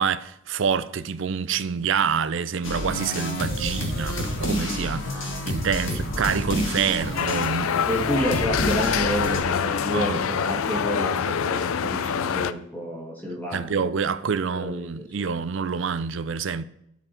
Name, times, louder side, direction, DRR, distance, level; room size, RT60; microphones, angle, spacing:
voice 1, 0.0-7.7 9.9-10.2 13.5-16.6, right 6 dB, 65° right, 0.5 m, -27 dB
sound 1, 2.6-9.4, left 1 dB, 70° left, 1.9 m, -29 dB
sound 2, 7.2-12.5, left 7 dB, 85° left, 0.4 m, -25 dB
voice 2, 7.8-13.6 14.5-15.1, right 1 dB, 10° left, 2.1 m, -30 dB
12.5 x 4.6 x 4.3 m
head